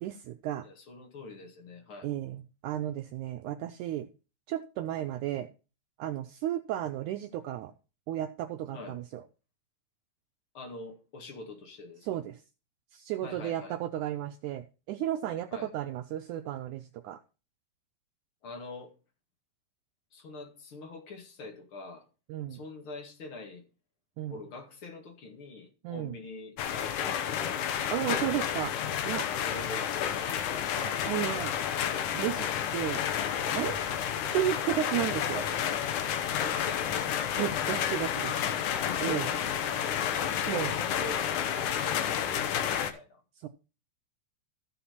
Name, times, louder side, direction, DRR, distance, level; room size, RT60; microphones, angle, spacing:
voice 1, 0.0-0.7 2.0-4.1 4.5-5.5 6.0-7.7 8.1-9.2 12.0-12.4 12.9-17.2 22.3-22.6 24.2-24.4 25.8-26.1 27.9-28.7 29.0-29.3 30.8-31.5 32.1-33.0 33.4-33.8 34.3-35.5 37.4-38.3 39.0-39.3 40.4-40.7 43.4-43.5, right 12 dB, 90° right, 1.7 m, -33 dB
voice 2, 0.6-2.1 8.7-9.0 10.5-12.1 13.2-13.8 15.5-15.7 18.4-18.9 20.1-22.1 22.5-23.6 24.3-28.4 29.3-30.4 36.3-37.3 38.8-43.2, left 3 dB, 45° left, 2.2 m, -44 dB
sound 1, 26.6-42.9, left 9 dB, 70° left, 2.2 m, -30 dB
14.0 x 5.7 x 4.3 m
omnidirectional pair, 4.1 m